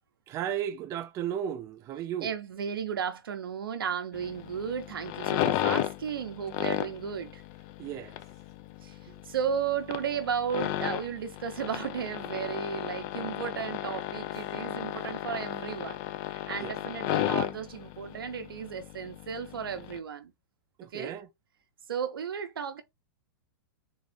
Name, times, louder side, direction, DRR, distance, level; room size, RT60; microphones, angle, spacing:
voice 1, 0.3-2.3 7.8-8.2 9.1-9.2 16.5-16.7 20.8-21.3, right 9 dB, 25° right, 0.5 m, -35 dB
voice 2, 2.2-7.4 8.8-9.0 9.2-16.0 16.3-20.3 20.9-21.1 21.9-22.8, right 7 dB, 90° right, 1.0 m, -34 dB
sound 1, 4.1-20.0, left 13 dB, 40° left, 0.4 m, -34 dB
4.0 x 2.5 x 3.4 m
hypercardioid pair, 135°, 12 cm